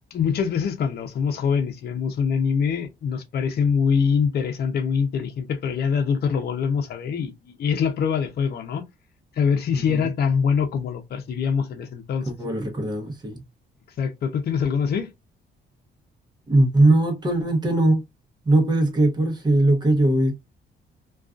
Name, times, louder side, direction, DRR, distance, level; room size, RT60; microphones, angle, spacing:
voice 1, 0.1-8.8 9.4-12.3 14.0-15.1, left 6 dB, 55° left, 0.6 m, -24 dB
voice 2, 9.7-10.1 12.3-13.4 16.5-18.0 18.5-20.3, right 2 dB, 20° right, 0.8 m, -20 dB
2.4 x 2.3 x 2.3 m
cardioid pair, 90°, 20 cm